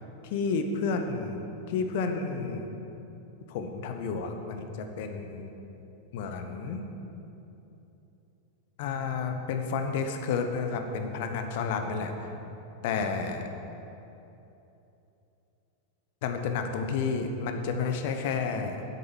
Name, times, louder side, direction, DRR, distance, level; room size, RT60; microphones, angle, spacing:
voice 1, 0.3-2.7 3.5-5.5 6.1-6.8 8.8-12.3 12.8-13.4 16.2-18.9, left 5 dB, 50° left, 6 dB, 1.2 m, -31 dB
10.5 x 8.7 x 7.4 m, 3.0 s
figure-of-eight pair, 90°, 0 cm